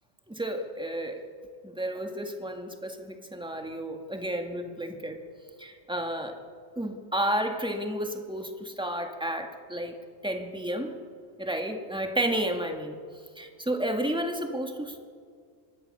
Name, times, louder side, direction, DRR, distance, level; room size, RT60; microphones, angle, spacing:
voice 1, 0.3-1.3 1.6-5.2 5.6-6.4 6.8-9.9 10.2-10.9 11.4-13.0 13.4-15.1, right 1 dB, 5° right, 4 dB, 1.8 m, -31 dB
25.5 x 21.0 x 6.7 m, 2.2 s
omnidirectional pair, 1.3 m